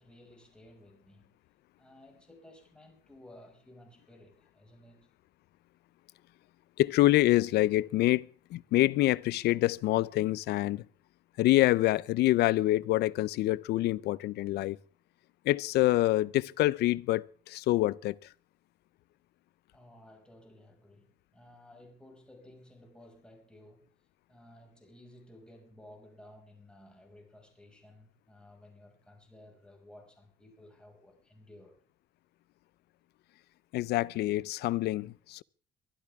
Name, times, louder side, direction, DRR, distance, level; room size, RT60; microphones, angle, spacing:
voice 1, 0.0-1.4 1.8-5.2 19.7-23.9 24.3-31.8, left 1 dB, 5° left, 6.1 m, -55 dB
voice 2, 6.8-10.9 11.4-14.8 15.4-18.2 33.7-35.4, left 16 dB, 75° left, 0.6 m, -26 dB
24.0 x 12.0 x 3.6 m
cardioid pair, 110°, 17 cm